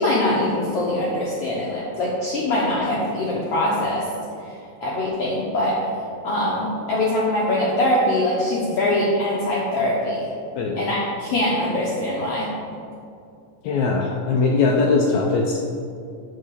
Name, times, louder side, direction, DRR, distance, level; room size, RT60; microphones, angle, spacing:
voice 1, 0.0-4.0 4.4-5.8 6.2-10.3 10.8-12.5, left 1 dB, 65° left, -5 dB, 1.5 m, -23 dB
voice 2, 13.6-15.6, left 4 dB, 80° left, 0 dB, 1.7 m, -20 dB
8.5 x 3.8 x 6.7 m, 2.5 s
omnidirectional pair, 3.7 m